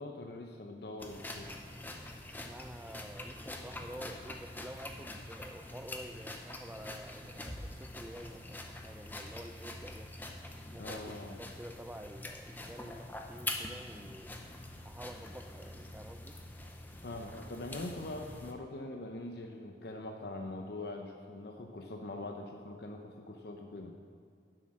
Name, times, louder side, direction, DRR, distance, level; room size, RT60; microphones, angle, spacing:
voice 1, 0.0-1.5 10.8-11.4 17.0-24.0, left 2 dB, 65° left, 3 dB, 0.7 m, -43 dB
sound 1, 1.0-18.5, left 1 dB, 10° left, 0.7 m, -45 dB
voice 2, 2.4-10.1 10.7-14.4 14.8-16.4, right 1 dB, 10° right, 8 dB, 0.3 m, -49 dB
10.5 x 7.7 x 6.4 m, 2.2 s
head